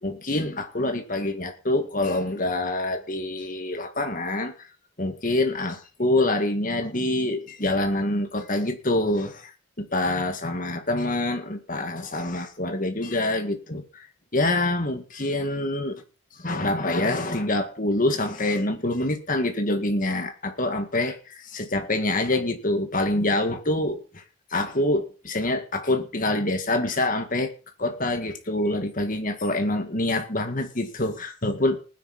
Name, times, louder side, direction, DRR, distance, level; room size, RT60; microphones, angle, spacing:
voice 1, 0.0-4.5 5.0-9.5 9.8-14.0 14.3-16.0 16.4-24.2 24.5-27.5 27.8-31.8, left 2 dB, 40° left, 2.0 m, -26 dB
20.0 x 9.9 x 4.2 m
head